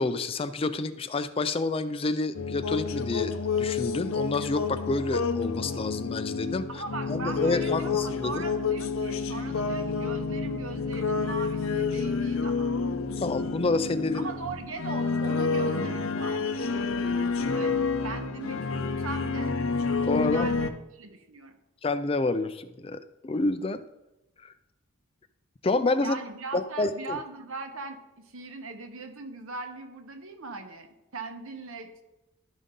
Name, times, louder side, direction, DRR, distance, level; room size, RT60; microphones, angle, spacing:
voice 1, 0.0-6.8 7.1-8.4 13.1-14.3 17.6-17.7 20.1-20.5 21.8-23.8 24.4-24.5 25.6-26.2 26.5-27.2, left 3 dB, 25° left, 12 dB, 0.3 m, -28 dB
sound 1, 2.3-20.7, left 4 dB, 75° left, 0.6 m, -29 dB
voice 2, 6.7-12.7 14.1-19.5 20.2-20.7 20.9-21.6 26.0-28.0 28.3-30.9 31.1-32.0, right 3 dB, 80° right, 6 dB, 1.1 m, -39 dB
12.0 x 5.3 x 3.7 m, 0.97 s
head